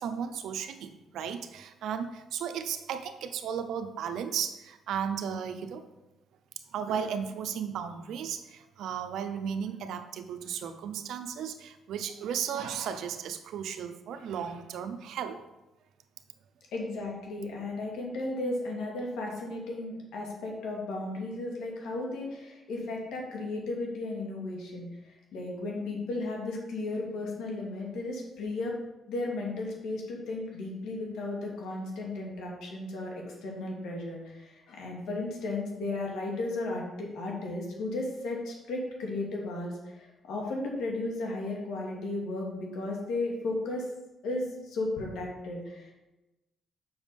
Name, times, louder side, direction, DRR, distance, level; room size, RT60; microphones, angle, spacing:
voice 1, 0.0-5.8 6.7-15.4, right 8 dB, 80° right, 9 dB, 0.8 m, -35 dB
voice 2, 16.7-28.7 29.1-43.8 44.2-45.9, left 2 dB, 85° left, -1 dB, 2.5 m, -35 dB
7.2 x 6.2 x 5.3 m, 1.0 s
cardioid pair, 90°, 0 cm